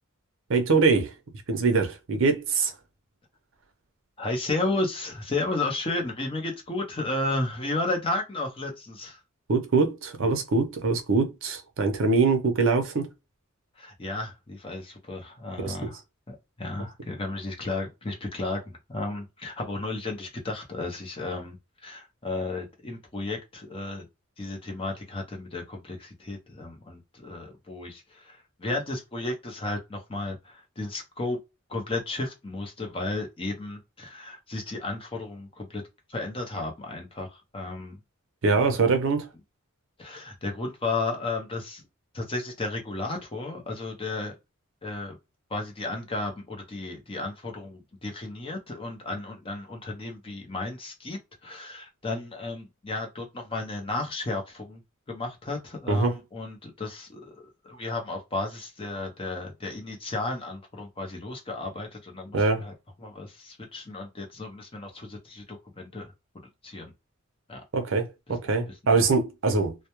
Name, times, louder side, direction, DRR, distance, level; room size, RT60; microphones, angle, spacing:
voice 1, 0.5-1.1 1.5-2.7 9.5-13.1 15.6-15.7 38.4-39.3 55.9-56.1 62.3-62.6 67.7-69.8, right 4 dB, 60° right, 0.6 m, -23 dB
voice 2, 4.2-9.2 13.8-16.0 16.3-24.1 24.4-31.4 31.7-35.8 36.1-38.0 38.5-39.0 40.0-41.9 42.1-44.4 44.8-45.2 45.5-54.8 55.1-62.7 63.0-66.9 67.5-67.6 68.3-68.4 68.7-69.0, left 2 dB, 25° left, 0.6 m, -33 dB
2.2 x 2.0 x 2.9 m
head